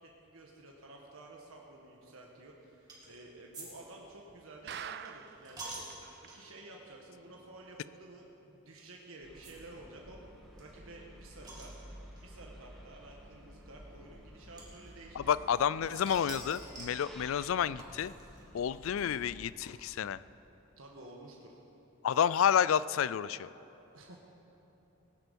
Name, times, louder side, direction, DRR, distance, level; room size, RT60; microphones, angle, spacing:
voice 1, 0.0-5.9 6.3-10.2 10.6-11.7 12.2-15.3 15.7-16.2 20.8-21.6 23.9-24.2, right 2 dB, 85° right, -1 dB, 1.4 m, -52 dB
sound 1, 2.9-3.2 3.5-3.7 3.9-6.6 7.2-7.4 7.7-7.8 8.8-8.9 9.4-9.5 9.8-9.9 10.1-10.2 10.6-12.2 13.1-13.2 14.6-15.6 15.9-17.0 17.8-20.1, right 2 dB, 20° right, 2.5 m, -48 dB
sound 2, 4.7-5.5 5.9-6.0 6.2-6.3 6.8-6.9, right 8 dB, 50° right, 0.3 m, -43 dB
sound 3, 9.2-19.4, equal, ahead, 1.4 m, -53 dB
voice 2, 15.2-18.1 18.5-20.2 22.0-23.5, left 8 dB, 80° left, 18 dB, 0.3 m, -30 dB
18.5 x 10.5 x 5.3 m, 3.0 s
head